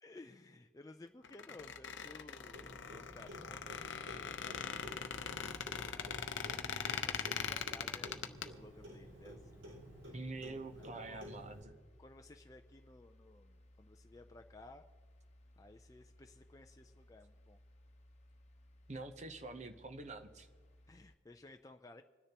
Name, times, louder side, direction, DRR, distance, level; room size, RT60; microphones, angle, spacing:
voice 1, 0.0-3.8 4.1-4.6 4.9-9.6 10.0-10.2 10.8-11.3 12.0-14.9 15.6-17.6 20.9-22.0, left 2 dB, 20° left, 5 dB, 0.4 m, -57 dB
Squeak, 1.2-8.5, left 7 dB, 70° left, 0.6 m, -41 dB
sound 1, 1.6-21.1, left 1 dB, 35° left, 1.0 m, -63 dB
Clock, 2.5-11.6, equal, 80° right, 2.7 m, -53 dB
voice 2, 10.1-11.8 18.9-20.5, right 2 dB, 35° right, 8 dB, 0.8 m, -46 dB
26.5 x 10.0 x 2.9 m, 1.5 s
head